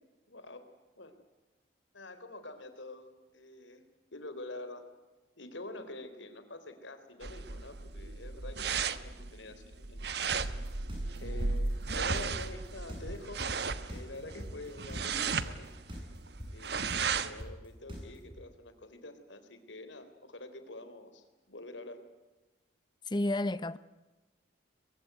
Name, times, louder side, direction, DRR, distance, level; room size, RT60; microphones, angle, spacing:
voice 1, 0.3-0.6 1.0-1.1 1.9-3.8 4.1-4.8 5.4-10.0 11.2-13.4 13.9-15.7 16.5-22.0, left 2 dB, 85° left, 3.6 m, -46 dB
sound 1, 7.2-17.4, right 4 dB, 60° right, 1.1 m, -35 dB
sound 2, 10.4-18.4, equal, 25° right, 7.8 m, -43 dB
voice 2, 23.1-23.8, left 1 dB, 25° left, 0.7 m, -30 dB
23.0 x 22.0 x 9.2 m
head